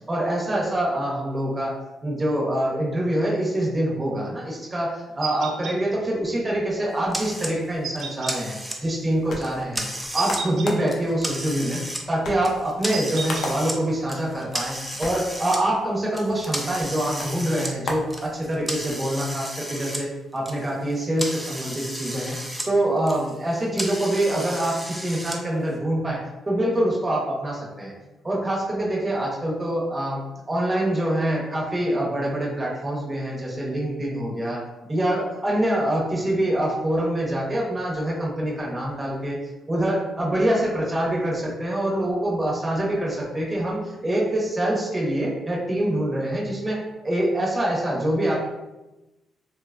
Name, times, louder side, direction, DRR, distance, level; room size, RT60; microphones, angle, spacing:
voice 1, 0.1-8.6 8.8-9.9 10.1-11.8 12.1-22.4 22.7-27.9 28.2-30.2 30.5-34.6 34.9-39.4 39.7-48.4, right 1 dB, 20° right, -4 dB, 0.8 m, -25 dB
sound 1, 5.2-5.8 7.8-8.4 10.2-10.7 12.9-13.5, right 5 dB, 65° right, 0.4 m, -32 dB
sound 2, 7.1-7.5 8.0-9.0 9.4-10.4 10.8-12.0 12.4-13.8 14.1-15.6 16.1-20.0 20.3-22.7 23.0-25.4, equal, 5° right, 0.4 m, -33 dB
sound 3, 8.9-18.9, left 2 dB, 60° left, 0.4 m, -38 dB
3.1 x 2.2 x 2.4 m, 1.0 s
cardioid pair, 90°, 0 cm